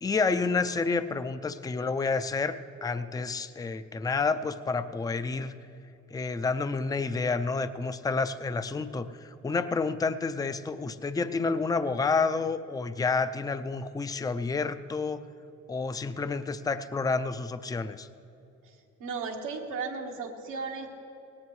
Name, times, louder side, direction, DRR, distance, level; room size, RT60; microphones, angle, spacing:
voice 1, 0.0-5.5 6.1-15.2 15.7-18.1, left 4 dB, 10° left, 12 dB, 0.4 m, -29 dB
voice 2, 19.0-20.9, right 4 dB, 90° right, 1 dB, 1.5 m, -35 dB
18.0 x 17.0 x 3.2 m, 2.7 s
cardioid pair, 90°, 30 cm